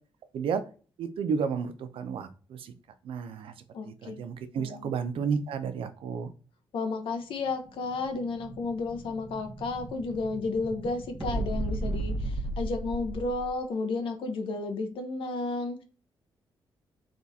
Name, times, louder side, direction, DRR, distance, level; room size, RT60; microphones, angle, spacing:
voice 1, 0.3-0.6 1.0-2.7 3.0-3.5 3.8-6.3, right 6 dB, 80° right, 10 dB, 0.5 m, -32 dB
voice 2, 3.7-4.2 4.6-4.9 6.7-15.8, left 3 dB, 70° left, 5 dB, 0.7 m, -32 dB
Explosion, 7.5-13.6, right 2 dB, 10° right, 0.9 m, -35 dB
3.6 x 2.4 x 4.1 m, 0.37 s
cardioid pair, 90°, 9 cm